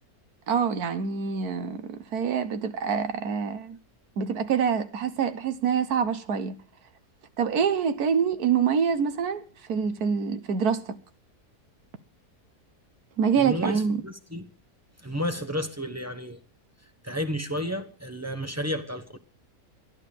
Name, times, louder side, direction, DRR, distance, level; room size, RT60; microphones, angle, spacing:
voice 1, 0.5-3.8 4.2-6.5 7.4-9.4 9.7-10.8 13.2-14.0, right 7 dB, 75° right, 1.5 m, -26 dB
voice 2, 13.3-14.5 15.0-16.4 17.0-19.2, equal, 10° right, 0.9 m, -32 dB
13.5 x 10.5 x 6.9 m
omnidirectional pair, 1.7 m